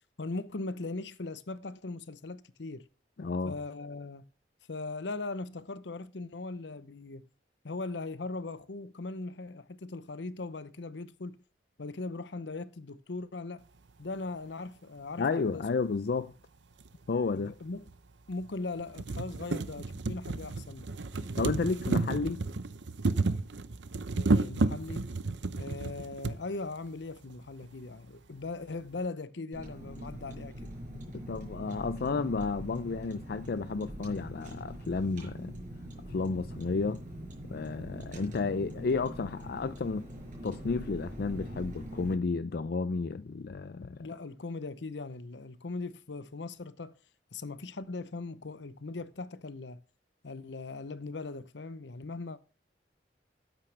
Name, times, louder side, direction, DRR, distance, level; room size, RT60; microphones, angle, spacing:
voice 1, 0.2-2.8 3.4-4.3 4.7-7.3 7.6-11.4 11.8-13.6 14.0-15.7 17.4-17.9 18.3-20.9 24.1-25.1 25.5-30.7 44.0-47.0 47.3-49.8 50.2-52.4, left 3 dB, 80° left, 0.8 m, -39 dB
voice 2, 3.2-3.6 15.2-16.3 17.1-17.5 21.4-22.4 31.1-35.5 36.1-37.0 37.5-40.1 40.4-44.0, left 4 dB, 60° left, 0.4 m, -32 dB
sound 1, 16.8-16.9 17.9-18.0 18.4-18.5 18.8-26.4 27.3-27.4 27.6-27.7, right 3 dB, 85° right, 0.8 m, -31 dB
Car, 29.5-42.1, equal, 50° right, 5.3 m, -43 dB
13.0 x 8.9 x 3.4 m
head